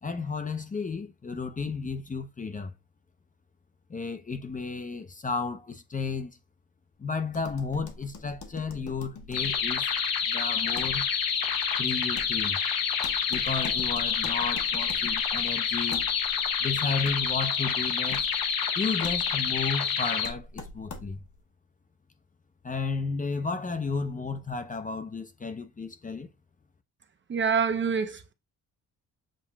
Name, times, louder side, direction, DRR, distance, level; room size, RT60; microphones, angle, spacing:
voice 1, 0.0-2.7 3.9-6.4 7.0-9.9 10.3-11.1 11.8-12.6 13.3-16.0 16.6-18.3 18.8-21.2 22.6-26.3, left 4 dB, 25° left, 0.5 m, -33 dB
sound 1, 7.3-21.4, left 3 dB, 60° left, 1.1 m, -45 dB
sound 2, 9.3-20.3, left 7 dB, 90° left, 1.0 m, -28 dB
voice 2, 27.3-28.3, right 6 dB, 35° right, 0.6 m, -26 dB
7.5 x 2.8 x 2.3 m
wide cardioid pair, 135°, 34 cm